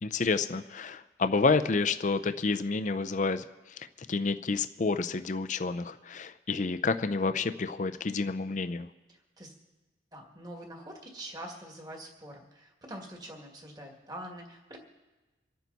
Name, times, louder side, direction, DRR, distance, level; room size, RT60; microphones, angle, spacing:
voice 1, 0.0-8.9, left 4 dB, 40° left, 10 dB, 0.5 m, -29 dB
voice 2, 9.1-9.5 10.1-14.8, right 1 dB, 20° right, 1 dB, 2.1 m, -45 dB
27.0 x 9.1 x 4.1 m, 1.2 s
head